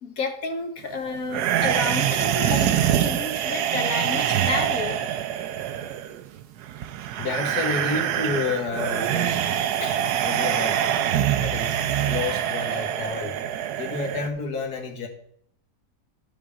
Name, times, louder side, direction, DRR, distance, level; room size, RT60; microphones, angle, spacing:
voice 1, 0.0-5.0, left 4 dB, 60° left, 4 dB, 1.5 m, -31 dB
sound 1, 1.3-14.3, right 10 dB, 80° right, 1.1 m, -25 dB
voice 2, 7.1-9.5 9.8-11.1 11.4-15.1, left 4 dB, 80° left, 0 dB, 2.1 m, -30 dB
11.5 x 6.9 x 3.6 m, 0.67 s
omnidirectional pair, 1.7 m